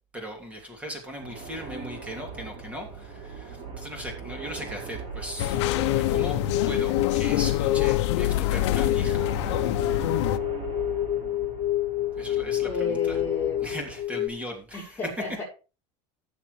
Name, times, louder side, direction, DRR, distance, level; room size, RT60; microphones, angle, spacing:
voice 1, 0.1-9.3 12.2-13.2 13.6-15.0, equal, 10° right, 2 dB, 2.8 m, -38 dB
sound 1, 1.2-14.0, right 5 dB, 45° right, 5.9 m, -40 dB
sound 2, 5.4-10.4, left 14 dB, 80° left, 0.7 m, -26 dB
sound 3, 5.5-14.3, left 13 dB, 40° left, 1.1 m, -29 dB
voice 2, 12.6-13.7 14.7-15.4, left 4 dB, 15° left, -7 dB, 4.8 m, -32 dB
15.0 x 7.3 x 3.2 m, 0.33 s
supercardioid pair, 155°, 15 cm